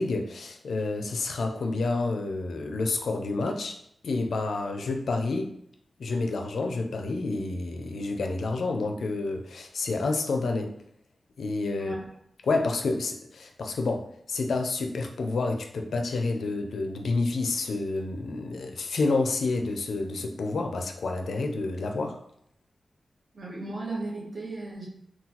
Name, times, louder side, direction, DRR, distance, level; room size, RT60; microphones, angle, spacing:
voice 1, 0.0-3.8 4.0-5.5 6.0-10.7 11.4-12.0 12.4-22.2, left 3 dB, 85° left, 4 dB, 0.4 m, -29 dB
voice 2, 23.3-24.9, right 2 dB, 45° right, -4 dB, 0.9 m, -35 dB
3.8 x 2.2 x 2.8 m, 0.71 s
wide cardioid pair, 140°, 0 cm